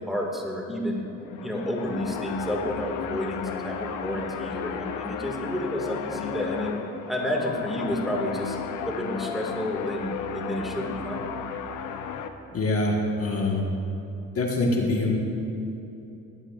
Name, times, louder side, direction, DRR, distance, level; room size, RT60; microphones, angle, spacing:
voice 1, 0.1-1.1 1.4-6.8 7.1-8.6 8.8-11.2, equal, ahead, -1 dB, 2.0 m, -30 dB
sound 1, 1.2-12.3, left 7 dB, 85° left, 0.8 m, -34 dB
voice 2, 12.5-13.6 14.3-15.2, left 2 dB, 50° left, -1 dB, 1.6 m, -24 dB
18.0 x 11.5 x 2.5 m, 3.0 s
cardioid pair, 90°, 30 cm